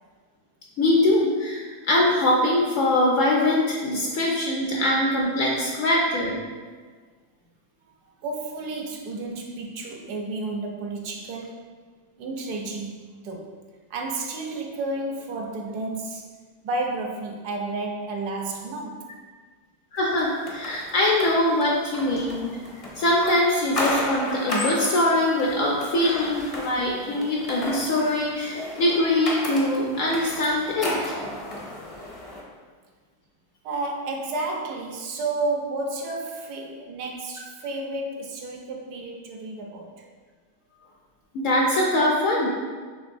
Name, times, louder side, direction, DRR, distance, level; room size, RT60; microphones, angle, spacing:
voice 1, 0.8-6.4 19.9-22.6 23.0-31.1 41.3-42.5, left 1 dB, 65° left, -2 dB, 0.8 m, -23 dB
voice 2, 8.2-11.7 12.2-13.6 13.9-16.3 16.6-19.1 33.6-40.1, right 2 dB, 75° right, 2 dB, 1.1 m, -31 dB
sound 1, 20.1-32.4, left 1 dB, 40° left, 0.5 m, -33 dB
6.0 x 3.3 x 2.6 m, 1.5 s
omnidirectional pair, 1.8 m